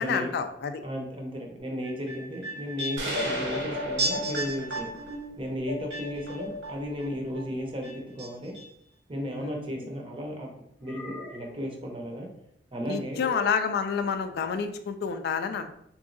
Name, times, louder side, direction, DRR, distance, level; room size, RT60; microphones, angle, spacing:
voice 1, 0.0-0.7 9.4-9.6 12.9-15.7, left 6 dB, 60° left, 9 dB, 0.3 m, -29 dB
voice 2, 0.8-4.9 5.4-8.5 9.1-10.5 10.8-12.3 12.7-13.2, equal, 30° right, 1 dB, 0.6 m, -34 dB
sound 1, 1.8-7.1 7.3-8.3 8.5-8.6, equal, 85° right, 1.3 m, -33 dB
sound 2, 3.0-4.9, right 2 dB, 70° right, 0.8 m, -34 dB
sound 3, 9.7-10.1 10.8-11.7 13.2-13.7, left 2 dB, 15° left, 0.7 m, -43 dB
3.6 x 3.0 x 2.5 m, 0.72 s
head